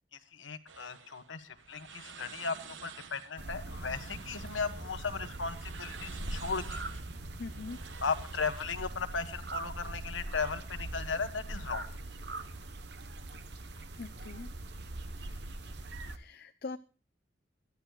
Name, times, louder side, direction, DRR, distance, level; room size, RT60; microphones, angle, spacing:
voice 1, 0.3-2.6 2.8-6.8 8.0-11.9, left 5 dB, 90° left, 8 dB, 1.4 m, -36 dB
sound 1, 0.7-9.0, right 6 dB, 80° right, 1.1 m, -51 dB
sound 2, 3.4-16.2, right 2 dB, 60° right, 1.0 m, -42 dB
voice 2, 7.4-7.8 14.0-14.5 16.1-16.8, left 3 dB, 55° left, 8 dB, 0.6 m, -42 dB
22.5 x 13.5 x 2.4 m, 0.33 s
head